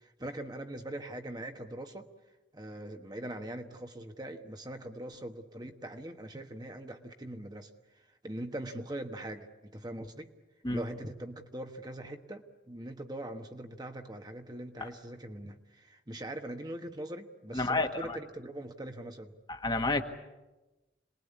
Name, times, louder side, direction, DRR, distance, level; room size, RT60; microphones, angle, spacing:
voice 1, 0.0-2.1 2.5-10.3 10.7-19.3, right 1 dB, 25° right, 5 dB, 1.3 m, -42 dB
voice 2, 17.5-18.2 19.5-20.0, left 2 dB, 25° left, 5 dB, 1.6 m, -30 dB
27.0 x 20.5 x 8.5 m, 1.1 s
head